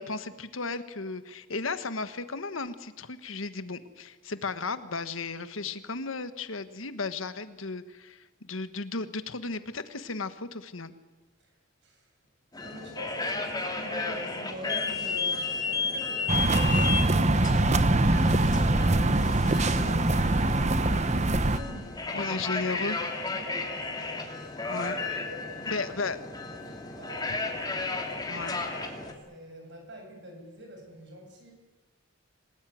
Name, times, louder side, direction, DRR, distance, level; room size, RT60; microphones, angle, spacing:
voice 1, 0.0-10.9 22.1-23.0 24.7-25.0 25.7-26.2 28.3-28.7, left 3 dB, 75° left, 11 dB, 1.4 m, -35 dB
sound 1, 12.5-29.1, left 4 dB, 20° left, 2.8 m, -33 dB
voice 2, 12.6-22.4 22.9-25.9 26.2-27.9 28.5-31.5, equal, 60° right, 3 dB, 7.4 m, -45 dB
sound 2, 16.3-21.6, right 2 dB, 35° right, 1.0 m, -23 dB
26.5 x 18.5 x 9.4 m, 1.2 s
head